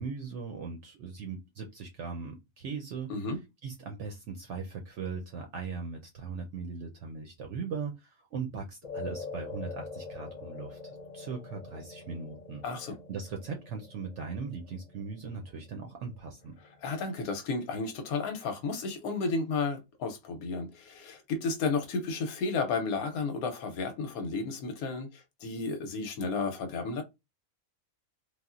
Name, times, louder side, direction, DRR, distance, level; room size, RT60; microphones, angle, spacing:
voice 1, 0.0-3.1 3.6-12.6 13.1-16.6, right 5 dB, 65° right, 0.8 m, -39 dB
sound 1, 8.8-17.3, left 4 dB, 40° left, 0.6 m, -45 dB
voice 2, 12.6-13.0 16.8-27.0, left 4 dB, 90° left, 1.1 m, -32 dB
3.3 x 2.4 x 2.4 m
omnidirectional pair, 1.5 m